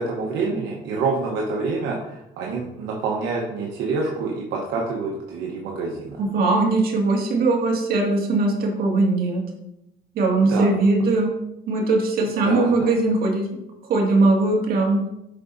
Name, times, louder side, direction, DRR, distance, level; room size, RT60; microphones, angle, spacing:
voice 1, 0.0-6.2 10.5-10.7 12.4-12.9, right 4 dB, 85° right, -2 dB, 1.1 m, -27 dB
voice 2, 6.2-9.4 10.2-11.3 11.7-13.5 13.9-15.0, right 2 dB, 60° right, -1 dB, 2.2 m, -20 dB
8.8 x 5.9 x 2.7 m, 0.87 s
cardioid pair, 110°, 17 cm